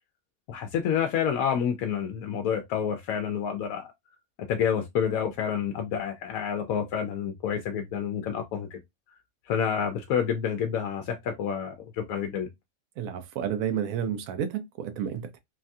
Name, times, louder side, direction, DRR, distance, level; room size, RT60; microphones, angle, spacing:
voice 1, 0.5-3.9 4.5-8.8 9.5-12.5, left 8 dB, 90° left, 1.0 m, -28 dB
voice 2, 13.0-15.4, right 8 dB, 85° right, 1.1 m, -31 dB
3.2 x 2.3 x 2.6 m
omnidirectional pair, 1.4 m